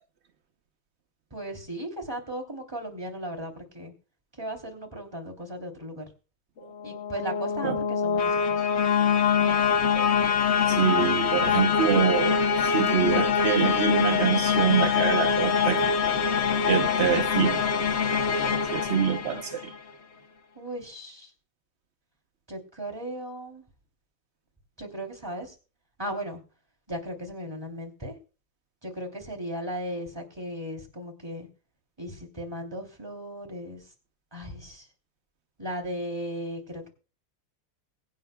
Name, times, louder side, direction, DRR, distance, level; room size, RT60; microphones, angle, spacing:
voice 1, 1.3-3.9 4.4-6.0 6.8-8.7 20.5-21.3 22.5-23.6 24.8-25.5 26.0-26.4 26.9-28.2 28.8-31.5 32.0-33.8 34.3-34.8 35.6-36.9, right 1 dB, 10° right, 3.0 m, -36 dB
sound 1, 6.7-19.8, left 6 dB, 75° left, 0.6 m, -24 dB
voice 2, 10.7-15.8 16.7-17.6 18.4-19.7, right 7 dB, 75° right, 0.6 m, -26 dB
23.0 x 9.0 x 2.3 m
omnidirectional pair, 2.4 m